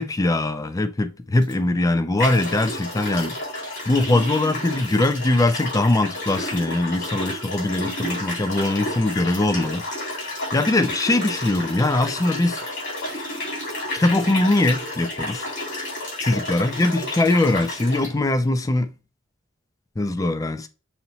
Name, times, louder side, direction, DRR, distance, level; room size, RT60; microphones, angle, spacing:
voice 1, 0.0-3.4 3.9-9.8 10.5-12.6 14.0-15.5 16.2-18.9 20.0-20.7, left 2 dB, 15° left, 0.3 m, -21 dB
sound 1, 1.4-1.5 2.2-18.1, left 1 dB, 55° left, 2.4 m, -31 dB
5.6 x 3.0 x 2.8 m
head